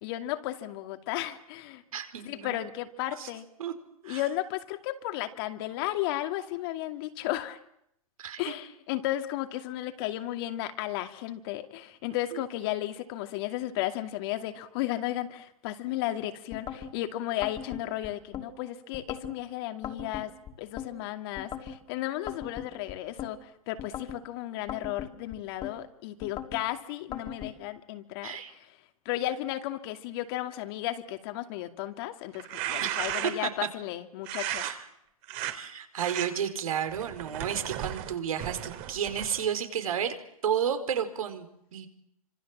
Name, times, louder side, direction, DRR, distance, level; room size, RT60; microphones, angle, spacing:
voice 1, 0.0-1.8 2.2-3.5 4.0-7.6 8.4-20.3 20.6-28.7 29.1-34.7, left 14 dB, 40° left, 7 dB, 2.4 m, -34 dB
voice 2, 1.9-2.6 3.2-3.3 3.6-3.7 4.0-4.2 8.2-8.5 12.3-12.4 28.2-28.5 32.8-33.5 34.6-34.8 35.5-40.1 40.4-41.9, right 8 dB, 65° right, 8 dB, 4.6 m, -32 dB
sound 1, 16.5-16.9 17.4-18.5 18.9-19.4 19.8-20.9 21.4-21.8 22.3-23.3 23.8-24.2 24.7-25.7 26.2-26.6 27.1-27.5, left 9 dB, 20° left, 2.9 m, -39 dB
sound 2, 32.3-33.6 34.3-34.7 35.2-35.5 36.0-36.3 36.9-39.5, right 12 dB, 35° right, 3.4 m, -35 dB
27.5 x 26.0 x 7.4 m, 0.77 s
hypercardioid pair, 135°, 19 cm